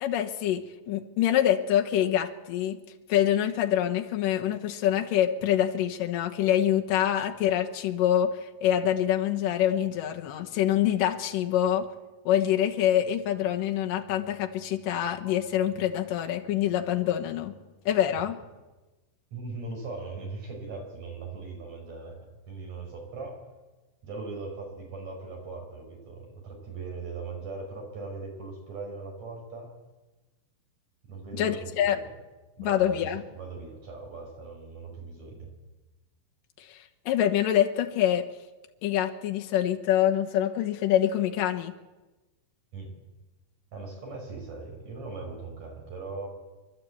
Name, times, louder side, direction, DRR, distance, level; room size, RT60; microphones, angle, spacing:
voice 1, 0.0-2.8 3.1-11.9 12.3-17.5 17.9-18.4 31.4-32.0 32.6-33.2 36.7-36.8 37.1-38.2 38.8-41.8, left 11 dB, 80° left, 4 dB, 2.8 m, -25 dB
voice 2, 19.3-22.2 22.5-23.5 24.0-29.7 31.1-32.1 32.6-35.5 42.7-42.9 43.7-46.3, right 3 dB, 55° right, 1 dB, 6.1 m, -39 dB
26.0 x 12.0 x 8.5 m, 1.2 s
omnidirectional pair, 4.0 m